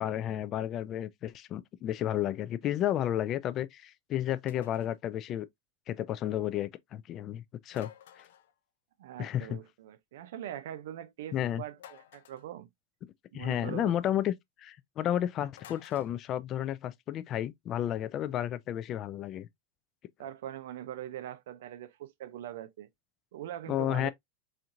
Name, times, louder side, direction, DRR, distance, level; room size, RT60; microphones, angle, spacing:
voice 1, 0.0-5.5 5.9-7.9 8.2-8.3 9.2-9.6 11.3-11.6 13.3-14.3 14.6-19.5 23.7-24.1, left 11 dB, 35° left, 0.4 m, -32 dB
sound 1, 4.5-5.0 7.7-8.5 11.8-12.5 15.6-16.1, left 10 dB, 85° left, 0.5 m, -51 dB
voice 2, 9.0-12.7 13.3-14.0 20.2-22.9 23.3-24.1, right 11 dB, 75° right, 0.5 m, -42 dB
4.3 x 2.5 x 2.6 m
supercardioid pair, 145°, 0 cm